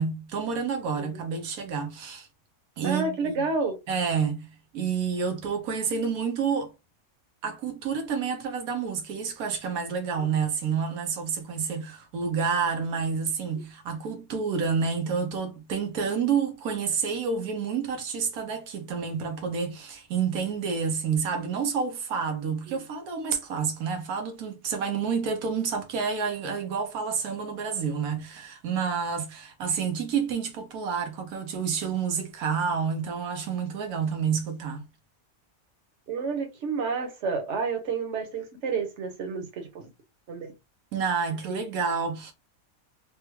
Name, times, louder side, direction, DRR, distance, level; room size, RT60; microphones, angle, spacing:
voice 1, 0.0-2.3 2.8-3.5 3.9-6.7 7.4-34.8 40.9-42.3, right 6 dB, 90° right, 1.3 m, -29 dB
voice 2, 2.8-3.8 22.7-22.8 36.1-39.9 40.3-40.5 41.5-41.6, right 4 dB, 60° right, 1.1 m, -30 dB
3.4 x 2.2 x 3.1 m
omnidirectional pair, 1.5 m